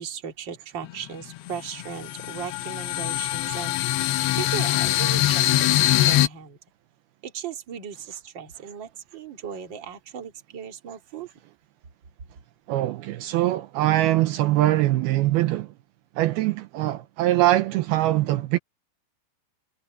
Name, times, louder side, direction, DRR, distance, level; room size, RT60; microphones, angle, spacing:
voice 1, 0.0-6.6 7.2-11.3, right 8 dB, 35° right, 2.4 m, -37 dB
sound 1, 0.8-0.9 1.4-6.3, left 15 dB, 85° left, 3.0 m, -23 dB
voice 2, 12.7-15.7 16.2-18.6, right 15 dB, 80° right, 2.6 m, -22 dB
omnidirectional pair, 4.8 m